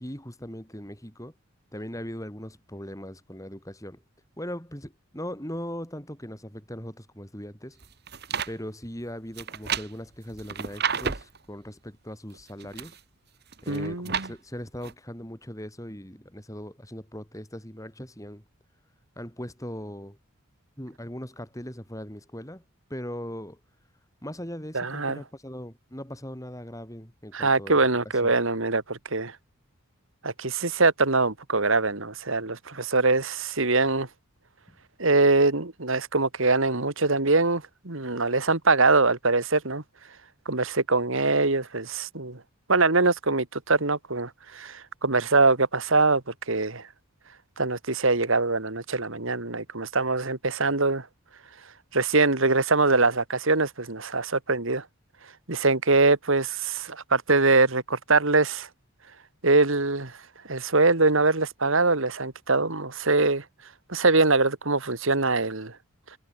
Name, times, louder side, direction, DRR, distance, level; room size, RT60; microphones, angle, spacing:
voice 1, 0.0-1.3 1.7-4.0 4.4-7.8 8.5-13.0 13.6-18.4 19.2-20.2 20.8-22.6 22.9-23.6 24.2-27.9 28.2-28.3, equal, 15° left, 5.4 m, -39 dB
sound 1, 7.8-8.5 9.4-11.4 12.3-13.0 13.5-14.3 14.8-14.9, right 6 dB, 50° right, 1.7 m, -31 dB
voice 2, 13.7-14.3 24.7-25.2 27.3-29.4 30.2-34.1 35.0-39.8 40.5-42.4 42.7-46.9 47.6-51.1 51.9-54.9 55.5-58.7 59.4-60.2 60.5-63.4 63.9-65.7, right 3 dB, 65° right, 2.0 m, -23 dB
head